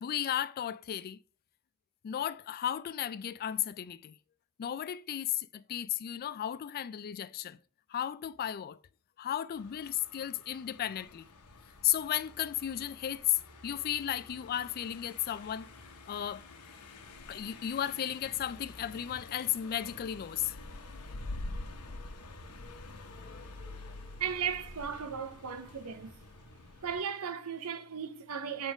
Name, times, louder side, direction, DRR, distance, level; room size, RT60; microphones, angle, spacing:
voice 1, 0.0-1.2 2.0-4.2 4.6-7.6 7.9-8.8 9.2-11.3 11.8-15.7 16.1-16.4 17.3-20.5 23.2-23.5, left 11 dB, 45° left, 0.3 m, -34 dB
Car passing by, 9.5-27.0, left 2 dB, 85° left, 0.9 m, -47 dB
voice 2, 24.2-26.2 26.8-28.7, right 7 dB, 80° right, 0.8 m, -36 dB
7.2 x 3.7 x 4.9 m
head